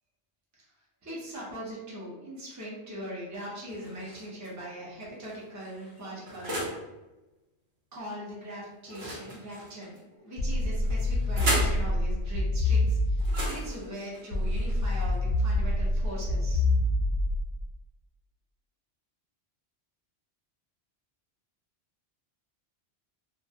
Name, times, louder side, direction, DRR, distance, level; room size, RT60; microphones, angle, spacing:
voice 1, 1.0-6.5 7.9-16.6, equal, 20° right, -6 dB, 0.5 m, -41 dB
sound 1, 3.7-4.5 5.2-6.9 8.8-10.0 10.8-11.8 13.2-15.1, right 1 dB, 65° right, 0.9 m, -36 dB
sound 2, 10.4-13.6 14.3-17.6, left 1 dB, 65° left, 0.7 m, -26 dB
2.4 x 2.1 x 2.6 m, 1.0 s
omnidirectional pair, 1.1 m